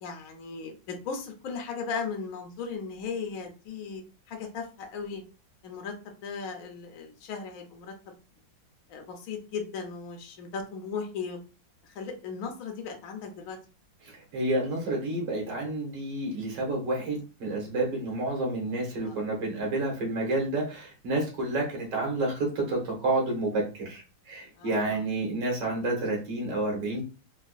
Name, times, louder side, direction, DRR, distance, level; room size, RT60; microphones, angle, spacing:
voice 1, 0.0-5.2 5.6-5.9 6.2-7.9 8.9-11.4 11.9-13.6 19.0-19.2 24.6-25.0, left 5 dB, 60° left, 2 dB, 1.0 m, -37 dB
voice 2, 14.3-24.0 24.3-27.0, right 2 dB, 70° right, -1 dB, 2.0 m, -29 dB
4.4 x 2.3 x 2.4 m, 0.33 s
omnidirectional pair, 2.0 m